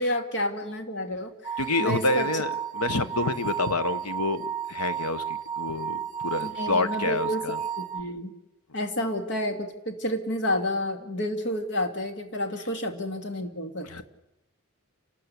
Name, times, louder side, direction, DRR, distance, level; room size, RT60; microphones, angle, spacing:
voice 1, 0.0-2.3 6.4-7.4 7.8-8.3 8.7-14.0, left 1 dB, 55° left, 6 dB, 2.6 m, -30 dB
sound 1, 1.4-8.0, right 8 dB, 35° right, 1.2 m, -32 dB
voice 2, 1.6-7.6 13.8-14.0, left 2 dB, 85° left, 12 dB, 1.4 m, -28 dB
29.5 x 13.0 x 8.4 m, 0.91 s
head